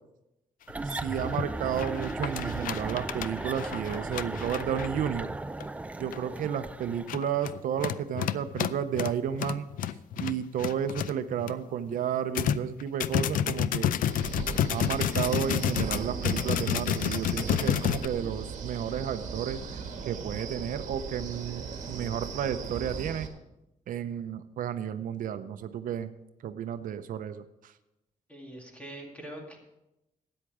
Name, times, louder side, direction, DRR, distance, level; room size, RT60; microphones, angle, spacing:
sound 1, 0.7-0.8 1.2-1.5 1.8-5.0 5.6-5.7 6.1-6.3 6.9-11.5 11.9-12.0 12.4-18.1, left 10 dB, 80° left, 0.4 m, -30 dB
sound 2, 0.7-7.1, right 2 dB, 10° right, 0.3 m, -36 dB
voice 1, 0.8-5.3 6.0-9.7 10.2-13.9 14.7-19.6 20.0-23.3 23.9-26.1 26.4-27.7, right 9 dB, 75° right, 10 dB, 0.6 m, -32 dB
Wind, 14.1-23.3, right 5 dB, 60° right, 1.6 m, -38 dB
voice 2, 28.3-29.6, right 1 dB, 10° left, 0 dB, 2.3 m, -43 dB
13.0 x 9.0 x 4.9 m, 0.91 s
wide cardioid pair, 165°, 14 cm